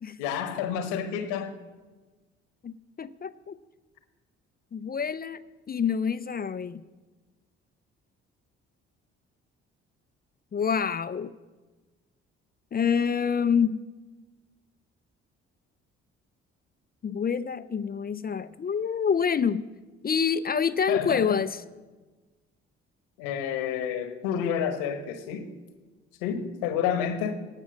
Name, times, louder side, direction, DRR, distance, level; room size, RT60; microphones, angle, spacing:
voice 1, 0.2-1.5 20.9-21.4 23.2-25.5 26.2-27.4, left 8 dB, 80° left, 10 dB, 1.2 m, -29 dB
voice 2, 2.6-3.6 4.7-6.8 10.5-11.3 12.7-13.8 17.0-19.7 20.0-21.6, left 6 dB, 30° left, 15 dB, 0.5 m, -27 dB
18.0 x 6.2 x 6.4 m, 1.3 s
hypercardioid pair, 50°, 32 cm